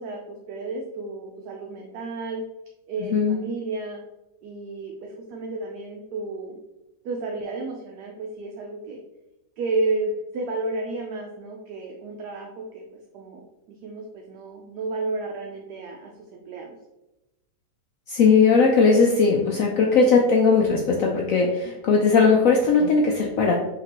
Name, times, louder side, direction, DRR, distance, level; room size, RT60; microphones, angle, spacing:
voice 1, 0.0-2.4 2.9-4.0 4.4-6.6 7.0-9.0 9.6-12.9 13.1-13.4 13.7-16.7, right 3 dB, 75° right, 1 dB, 1.1 m, -32 dB
voice 2, 18.1-23.5, left 4 dB, 70° left, 0 dB, 0.8 m, -18 dB
5.0 x 2.9 x 2.9 m, 0.99 s
omnidirectional pair, 1.9 m